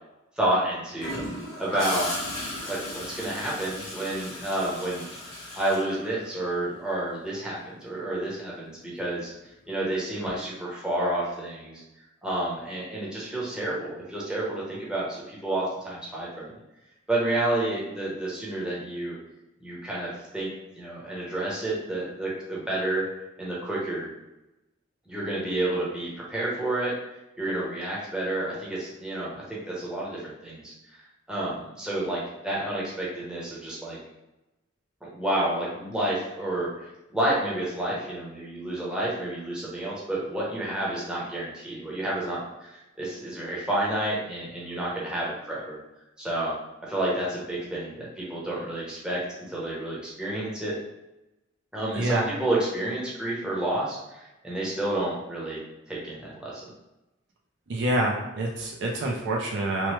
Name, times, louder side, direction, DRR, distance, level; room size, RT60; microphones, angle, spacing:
voice 1, 0.4-1.2 1.6-2.1 2.6-5.1 5.5-9.3 9.7-11.8 12.2-16.5 17.1-19.2 19.6-20.5 20.8-23.0 23.4-24.1 25.1-26.9 27.4-30.7 31.3-34.0 35.0-45.8 46.2-46.5 46.8-50.8 51.7-55.6 55.9-56.7, right 1 dB, 5° right, -6 dB, 0.7 m, -30 dB
Gurgling / Toilet flush, 1.0-6.7 8.7-9.0, left 1 dB, 30° left, 0.8 m, -36 dB
voice 2, 52.0-52.3 57.7-59.9, right 1 dB, 60° right, -1 dB, 0.5 m, -27 dB
3.0 x 2.0 x 3.1 m, 0.96 s
head